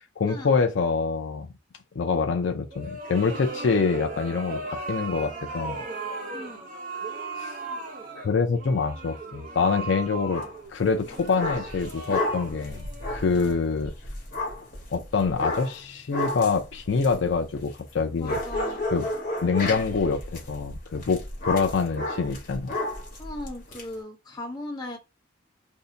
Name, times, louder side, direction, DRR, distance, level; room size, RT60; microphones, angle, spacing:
voice 1, 0.2-1.5 2.0-5.8 7.4-7.5 8.1-10.4 10.7-13.9 14.9-18.4 18.9-19.0 19.4-22.7, left 5 dB, 70° left, 0.4 m, -25 dB
sound 1, 2.7-13.7, right 3 dB, 45° right, 0.7 m, -37 dB
voice 2, 6.3-6.7 13.3-13.6 18.2-18.8 23.2-25.0, left 1 dB, 20° left, 0.8 m, -38 dB
sound 2, 10.3-10.6 11.0-17.9 18.2-23.8, left 1 dB, 45° left, 1.1 m, -32 dB
2.7 x 2.1 x 3.7 m
head